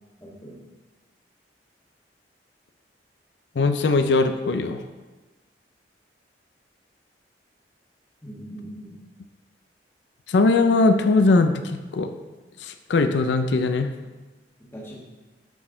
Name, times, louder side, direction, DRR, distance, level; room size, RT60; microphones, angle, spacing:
voice 1, 0.2-0.6 8.2-9.0 14.6-15.0, right 1 dB, 15° left, -4 dB, 1.3 m, -40 dB
voice 2, 3.6-4.8 10.3-12.1 12.6-13.9, left 3 dB, 75° left, 8 dB, 0.4 m, -20 dB
8.3 x 4.0 x 3.7 m, 1.2 s
head